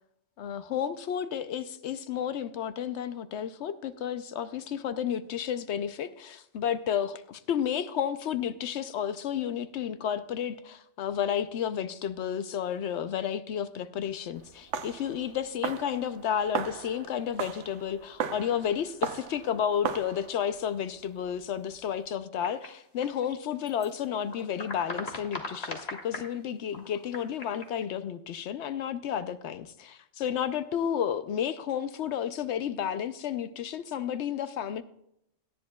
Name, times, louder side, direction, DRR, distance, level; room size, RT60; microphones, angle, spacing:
voice 1, 0.4-34.8, left 9 dB, 75° left, 0.9 m, -32 dB
sound 1, 14.4-22.0, right 7 dB, 85° right, 1.0 m, -37 dB
sound 2, 22.4-23.9 24.1-26.3 26.7-27.8, left 2 dB, 35° left, 1.5 m, -39 dB
17.5 x 10.5 x 2.3 m
omnidirectional pair, 1.2 m